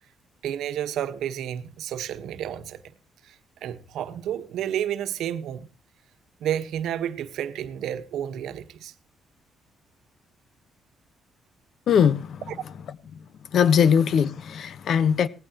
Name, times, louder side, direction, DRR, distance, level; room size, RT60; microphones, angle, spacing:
voice 1, 0.4-2.8 3.2-5.7 6.4-8.9 12.5-12.6, right 10 dB, 80° right, 1.3 m, -31 dB
voice 2, 11.9-12.4 13.1-13.2 13.5-15.3, left 7 dB, 65° left, 1.1 m, -21 dB
18.5 x 15.5 x 3.0 m
cardioid pair, 90°, 0 cm